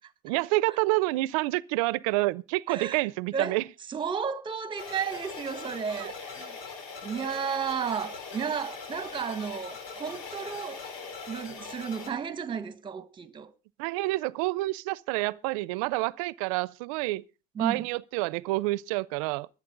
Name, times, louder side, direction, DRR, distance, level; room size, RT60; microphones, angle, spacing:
voice 1, 0.2-3.6 6.0-6.1 13.8-17.2 17.6-19.5, right 20 dB, 90° right, 0.6 m, -28 dB
voice 2, 2.7-3.0 3.3-3.6 3.9-6.6 7.0-10.9 11.3-13.5 17.5-17.9, right 7 dB, 30° right, 1.5 m, -33 dB
sound 1, 4.8-12.1, left 5 dB, 85° left, 3.9 m, -41 dB
23.0 x 8.5 x 3.9 m
cardioid pair, 115°, 17 cm